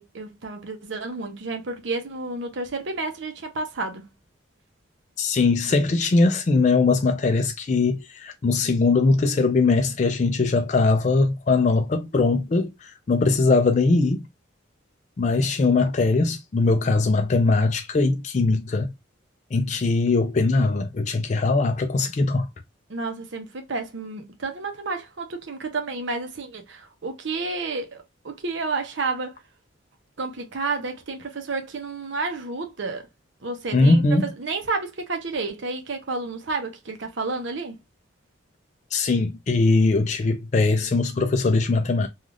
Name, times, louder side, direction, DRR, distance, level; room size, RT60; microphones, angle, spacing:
voice 1, 0.0-4.1 22.9-29.4 30.2-33.1 33.4-37.8, right 3 dB, 65° right, 0.7 m, -31 dB
voice 2, 5.2-14.2 15.2-18.9 19.5-22.5 33.7-34.3 38.9-42.1, left 3 dB, 35° left, 0.3 m, -21 dB
3.3 x 2.4 x 2.4 m
head